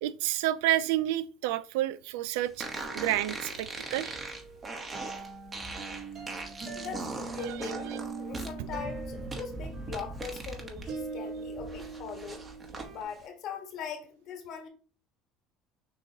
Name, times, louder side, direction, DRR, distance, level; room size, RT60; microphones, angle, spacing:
voice 1, 0.0-2.7 2.9-4.2 7.4-8.0, right 14 dB, 85° right, 0.3 m, -30 dB
sound 1, 2.6-10.9 11.3-12.9, right 3 dB, 30° right, 1.1 m, -40 dB
sound 2, 2.6-13.0, right 4 dB, 50° right, 1.5 m, -42 dB
voice 2, 6.7-7.9 8.2-12.4 12.9-14.7, left 6 dB, 60° left, 1.3 m, -40 dB
6.2 x 3.0 x 2.8 m
supercardioid pair, 95°, 0 cm